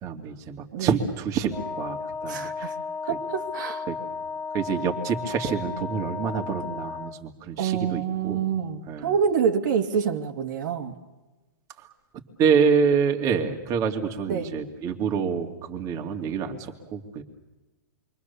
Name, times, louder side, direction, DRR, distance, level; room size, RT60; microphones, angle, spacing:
voice 1, 0.0-2.7 3.9-4.0 4.5-8.5 8.9-9.1 11.8-11.9 12.4-17.2, right 6 dB, 30° right, 2 dB, 2.7 m, -27 dB
Wind instrument woodwind instrument, 1.5-7.2, left 5 dB, 15° left, 1.6 m, -34 dB
voice 2, 2.3-2.7 3.0-3.9 7.6-11.0 14.3-14.6, right 7 dB, 60° right, 3 dB, 2.6 m, -27 dB
28.0 x 24.0 x 7.1 m, 1.1 s
hypercardioid pair, 140°, 11 cm